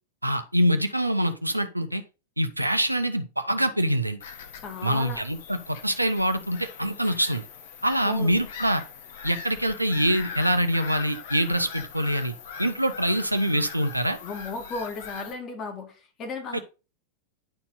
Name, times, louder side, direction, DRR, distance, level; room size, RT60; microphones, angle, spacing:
voice 1, 0.2-2.0 2.4-4.2 4.8-7.5 7.8-8.8 9.2-12.3 12.6-14.2 16.5-16.6, equal, 85° right, 0.8 m, -25 dB
Bird vocalization bird call bird song / Gull seagull, 4.2-15.3, left 6 dB, 55° left, 1.3 m, -41 dB
voice 2, 4.5-5.2 8.0-8.3 14.2-16.6, left 3 dB, 30° left, 2.2 m, -35 dB
10.5 x 4.3 x 4.1 m
figure-of-eight pair, 90°, 0 cm